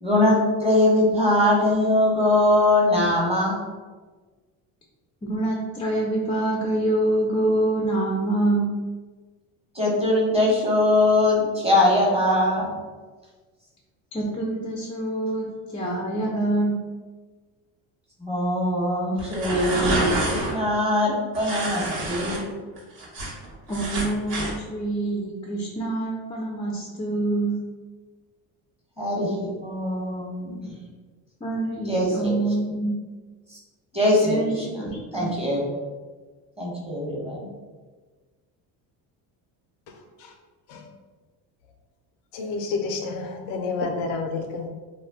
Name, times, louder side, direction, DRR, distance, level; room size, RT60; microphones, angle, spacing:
voice 1, 0.0-3.6 9.7-12.7 18.2-22.5 29.0-30.8 31.9-32.3 33.9-34.6 35.1-35.7 36.6-37.5, left 1 dB, 15° right, -4 dB, 1.0 m, -22 dB
voice 2, 5.2-8.7 14.1-15.5 15.7-16.8 23.7-27.6 31.4-32.9 34.2-35.3, right 2 dB, 15° left, -2 dB, 0.4 m, -26 dB
sound 1, 19.2-20.5 21.3-22.4 22.8-24.5, right 2 dB, 90° right, 1.1 m, -28 dB
voice 3, 39.9-40.3 42.3-44.7, left 4 dB, 85° left, 4 dB, 0.6 m, -29 dB
2.3 x 2.1 x 3.5 m, 1.4 s
supercardioid pair, 80°, 46 cm